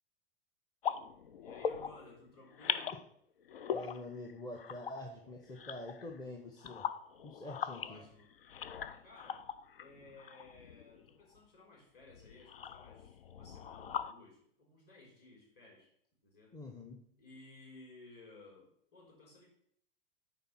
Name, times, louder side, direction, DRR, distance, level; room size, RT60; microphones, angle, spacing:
sound 1, 0.8-2.1 2.4-3.0 3.4-6.2 6.6-11.4 12.0-14.1, left 8 dB, 70° left, 0.5 m, -41 dB
voice 1, 1.4-3.0 7.7-8.3 9.0-9.5 9.8-15.9 16.2-16.6 17.2-19.5, left 2 dB, 35° left, -2 dB, 4.0 m, -57 dB
voice 2, 3.7-6.9 7.2-8.0 16.5-17.0, left 1 dB, 15° left, 1 dB, 0.9 m, -46 dB
9.3 x 4.0 x 6.0 m, 0.68 s
figure-of-eight pair, 90°, 29 cm